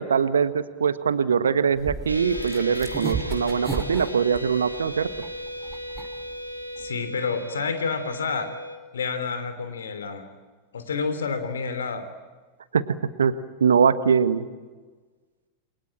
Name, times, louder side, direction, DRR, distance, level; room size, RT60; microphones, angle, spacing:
voice 1, 0.0-5.1 12.7-12.8 13.2-13.3 13.6-14.4, right 6 dB, 70° right, 13 dB, 1.4 m, -22 dB
sound 1, 1.8-6.9, right 4 dB, 15° right, 2.6 m, -34 dB
sound 2, 2.1-8.8, equal, 90° right, 2.8 m, -36 dB
voice 2, 6.8-8.5 8.9-10.3 10.7-12.1, left 5 dB, 70° left, 10 dB, 3.3 m, -29 dB
29.5 x 22.5 x 8.9 m, 1.4 s
figure-of-eight pair, 90°, 0 cm